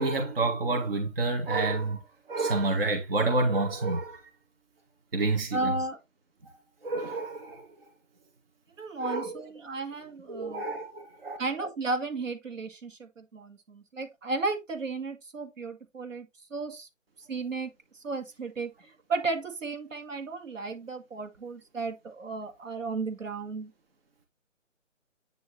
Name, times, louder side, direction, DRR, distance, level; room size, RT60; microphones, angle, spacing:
voice 1, 0.0-2.0 2.3-4.3 5.1-5.8 6.8-7.7 9.0-9.4 10.3-11.4, right 2 dB, 45° right, 1.8 m, -28 dB
voice 2, 5.5-6.0 8.8-10.6 11.4-16.9 17.3-17.7 18.0-18.7 19.1-23.7, right 3 dB, 75° right, 2.4 m, -34 dB
9.3 x 4.3 x 3.2 m
hypercardioid pair, 175°, 39 cm